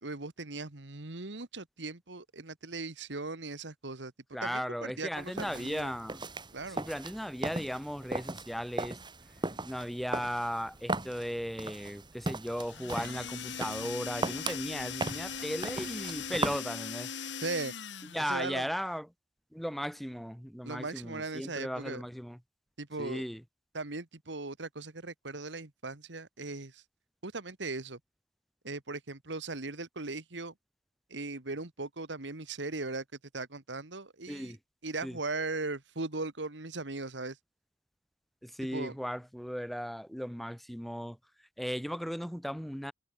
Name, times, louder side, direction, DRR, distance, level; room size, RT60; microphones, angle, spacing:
voice 1, 0.0-4.1 4.4-6.0 6.5-6.8 17.4-17.7 18.3-18.7 20.6-22.0 22.8-23.2 23.7-26.8 27.2-28.0 28.6-30.5 31.1-33.0 33.3-34.6 34.8-37.4 38.7-39.0, right 3 dB, 70° right, 1.9 m, -38 dB
voice 2, 4.3-6.2 6.7-9.0 9.6-17.1 18.1-19.1 19.5-22.4 23.0-23.4 34.3-34.6 35.0-35.2 38.4-41.2 41.6-42.9, equal, ahead, 1.8 m, -36 dB
sound 1, 5.2-16.6, right 2 dB, 25° right, 3.1 m, -38 dB
sound 2, 12.6-18.4, left 7 dB, 75° left, 1.8 m, -40 dB
head